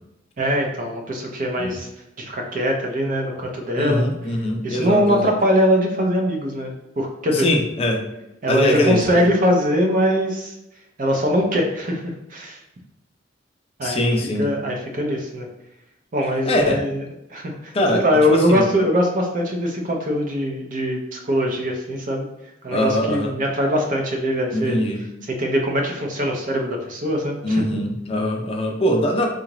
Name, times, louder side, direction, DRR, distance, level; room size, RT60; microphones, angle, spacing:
voice 1, 0.4-1.9 2.2-4.0 4.6-6.7 7.0-7.5 8.4-10.5 11.0-12.6 13.8-14.1 14.4-15.5 16.1-17.0 17.3-22.3 22.6-24.8 25.3-27.6, equal, 45° right, 1 dB, 0.6 m, -22 dB
voice 2, 3.8-5.3 7.3-8.1 8.5-9.3 13.8-14.5 16.5-16.8 17.7-18.0 18.3-18.6 22.7-23.3 24.5-25.0 27.4-29.3, left 1 dB, 30° left, 2 dB, 0.5 m, -22 dB
3.8 x 2.4 x 3.0 m, 0.90 s
head